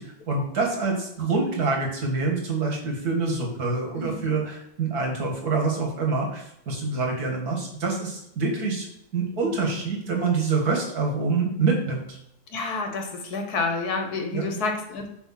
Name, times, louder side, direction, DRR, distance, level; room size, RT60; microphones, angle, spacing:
voice 1, 0.0-8.9 9.1-12.2 14.3-14.6, right 4 dB, 85° right, 0 dB, 2.3 m, -26 dB
voice 2, 4.0-4.3 9.4-9.8 12.5-15.1, left 3 dB, 85° left, 4 dB, 1.7 m, -29 dB
7.1 x 3.4 x 5.8 m, 0.78 s
omnidirectional pair, 1.6 m